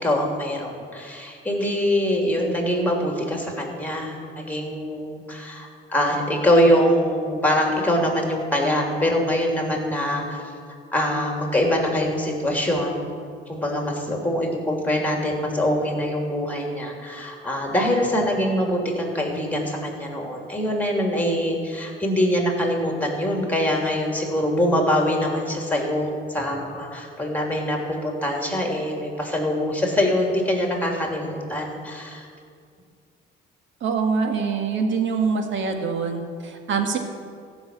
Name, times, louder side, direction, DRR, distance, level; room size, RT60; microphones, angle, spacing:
voice 1, 0.0-10.4 10.9-13.0 13.5-32.3, equal, 10° left, 0 dB, 3.0 m, -24 dB
voice 2, 33.8-37.0, right 5 dB, 70° right, 4 dB, 1.7 m, -24 dB
15.0 x 6.2 x 8.5 m, 2.2 s
cardioid pair, 90°, 20 cm